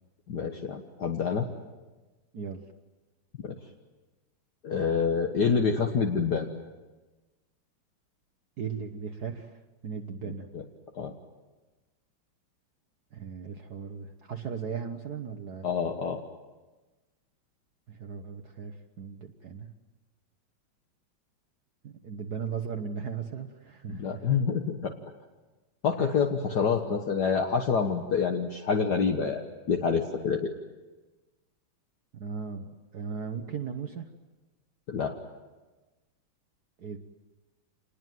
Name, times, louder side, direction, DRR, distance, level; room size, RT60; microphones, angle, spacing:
voice 1, 0.3-1.5 3.4-3.6 4.6-6.5 10.2-10.6 11.0-11.1 15.6-16.2 23.9-24.9 25.8-30.5 34.9-35.2, left 6 dB, 55° left, 3 dB, 1.9 m, -27 dB
voice 2, 2.3-2.6 8.6-10.5 13.1-15.7 17.9-19.7 21.8-24.3 26.0-26.1 32.1-34.1 36.8-37.0, right 6 dB, 55° right, 5 dB, 1.6 m, -37 dB
27.5 x 20.5 x 9.3 m, 1.2 s
omnidirectional pair, 2.2 m